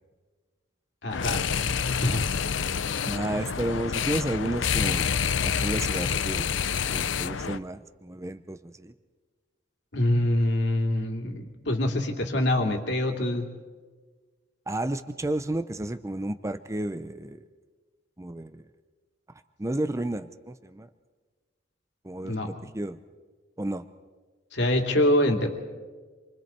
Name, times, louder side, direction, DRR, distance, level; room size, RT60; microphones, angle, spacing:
voice 1, 1.0-1.6 1.9-2.2 9.9-13.4 22.2-22.5 24.5-25.5, left 1 dB, 65° left, 3 dB, 2.7 m, -25 dB
sound 1, 1.1-7.6, left 6 dB, 85° left, 0.6 m, -28 dB
voice 2, 3.0-5.2 5.4-6.5 6.9-8.9 14.7-17.4 18.2-18.6 19.6-20.9 22.0-23.0 23.6-23.8, right 1 dB, 15° right, 10 dB, 0.6 m, -32 dB
28.0 x 24.0 x 4.4 m, 1.4 s
head